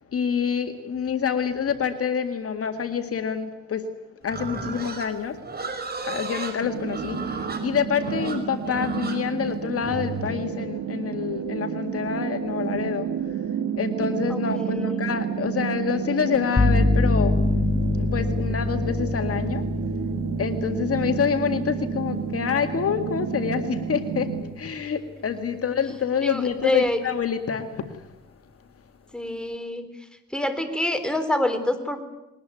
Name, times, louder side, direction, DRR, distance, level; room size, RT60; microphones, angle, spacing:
voice 1, 0.1-3.8 4.2-5.4 6.0-13.1 13.8-17.4 17.9-19.6 20.4-24.3 24.6-28.1, left 7 dB, 50° left, 8 dB, 1.9 m, -27 dB
Livestock farm animals working animals, 4.3-10.3, right 3 dB, 30° right, 5.4 m, -34 dB
sound 1, 6.6-24.4, right 8 dB, 85° right, 2.3 m, -30 dB
voice 2, 14.3-15.1 26.2-27.0 29.1-29.9 30.3-32.0, left 1 dB, 5° left, 8 dB, 3.8 m, -26 dB
sound 2, 16.6-24.3, left 2 dB, 20° left, 1.2 m, -26 dB
21.5 x 19.0 x 9.2 m, 0.99 s
cardioid pair, 90°, 30 cm